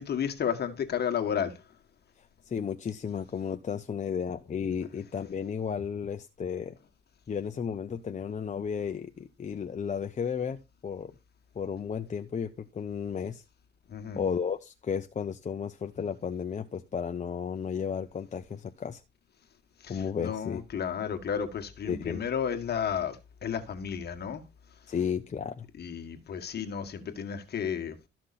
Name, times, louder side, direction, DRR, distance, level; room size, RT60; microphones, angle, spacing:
voice 1, 0.0-1.6 13.9-14.2 19.8-24.4 25.8-28.0, left 8 dB, 55° left, 1.7 m, -32 dB
voice 2, 2.5-6.7 7.3-10.6 10.8-11.1 11.6-13.4 14.2-19.0 19.9-20.6 21.9-22.2 24.9-25.6, left 7 dB, 35° left, 0.8 m, -33 dB
13.0 x 6.0 x 4.2 m
cardioid pair, 90°, 20 cm